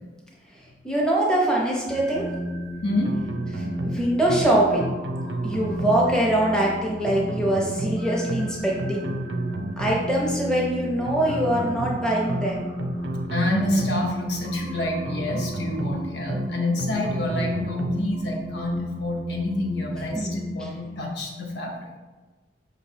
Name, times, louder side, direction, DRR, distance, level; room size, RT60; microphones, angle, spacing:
voice 1, 0.8-2.2 3.5-4.9 5.4-9.1 9.8-12.7 20.1-20.7, right 1 dB, 5° left, -4 dB, 0.6 m, -23 dB
sound 1, 1.9-20.5, equal, 35° left, 0.8 m, -33 dB
voice 2, 2.8-3.2 13.3-21.9, left 1 dB, 70° left, 0 dB, 0.7 m, -27 dB
sound 2, 3.0-4.0 4.3-4.5 4.8-6.0 7.0-8.0 8.3-8.5 8.8-10.0 11.0-12.0 12.3-12.5 12.8-14.0 15.0-16.0 16.3-16.5 16.8-18.0, right 2 dB, 65° right, 0.3 m, -31 dB
5.2 x 3.0 x 2.7 m, 1.3 s
head